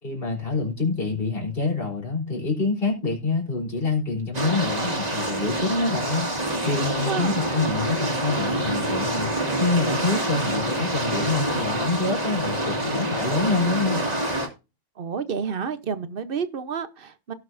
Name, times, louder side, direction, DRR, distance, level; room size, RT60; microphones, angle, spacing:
voice 1, 0.0-6.3 6.6-9.3 9.6-14.1, left 3 dB, 50° left, 3.8 m, -26 dB
sound 1, 4.3-14.5, right 1 dB, 35° right, 2.3 m, -26 dB
voice 2, 7.0-7.4 15.0-17.3, right 6 dB, 50° right, 1.0 m, -30 dB
17.0 x 6.4 x 2.6 m
omnidirectional pair, 1.2 m